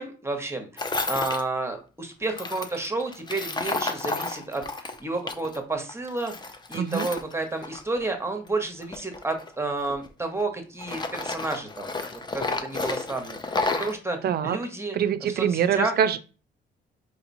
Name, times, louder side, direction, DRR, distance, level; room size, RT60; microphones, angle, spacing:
voice 1, 0.0-6.3 6.7-14.2 14.4-15.0 15.2-15.9, right 2 dB, 15° right, 5 dB, 0.8 m, -31 dB
Tools, 0.8-1.4 2.3-5.6 5.9-8.2 8.8-10.4 10.8-14.0, left 3 dB, 20° left, 0.5 m, -31 dB
voice 2, 6.7-7.1 14.2-14.6 14.9-16.2, right 9 dB, 55° right, 12 dB, 0.4 m, -24 dB
5.0 x 2.8 x 2.6 m, 0.35 s
cardioid pair, 90°, 20 cm